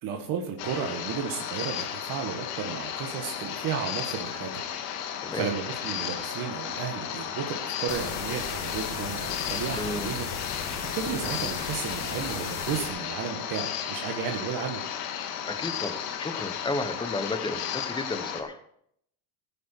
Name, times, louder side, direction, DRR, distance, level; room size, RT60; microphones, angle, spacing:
voice 1, 0.0-4.5 5.1-10.3 10.9-14.8, right 7 dB, 45° right, 2 dB, 2.0 m, -33 dB
sound 1, 0.6-18.4, left 9 dB, 80° left, 2.2 m, -34 dB
sound 2, 7.9-12.9, left 5 dB, 35° left, 2.4 m, -36 dB
voice 2, 9.7-10.2 15.4-18.6, left 2 dB, 10° left, 9 dB, 1.2 m, -33 dB
16.0 x 9.7 x 4.7 m, 0.71 s
supercardioid pair, 135°, 47 cm